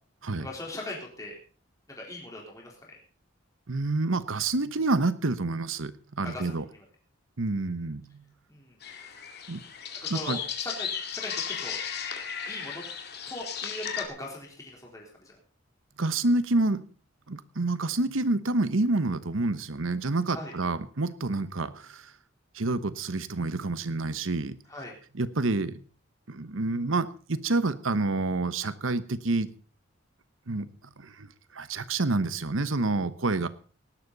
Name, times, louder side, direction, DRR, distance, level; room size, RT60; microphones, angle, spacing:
voice 1, 0.4-1.4 1.9-2.9 6.2-6.8 8.5-8.8 10.0-11.8 12.5-12.8 13.3-15.3 20.3-20.5 24.7-25.0, left 1 dB, 15° left, -2 dB, 3.9 m, -40 dB
voice 2, 3.7-6.6 7.4-8.2 9.5-9.6 10.1-10.4 16.0-16.8 17.3-22.1 22.5-24.6 25.2-25.9 26.3-29.5 30.5-30.7 31.0-31.3 31.5-33.5, right 2 dB, 80° right, 14 dB, 1.1 m, -28 dB
sound 1, 8.8-14.1, left 7 dB, 55° left, 2.2 m, -35 dB
18.0 x 12.0 x 4.1 m, 0.39 s
head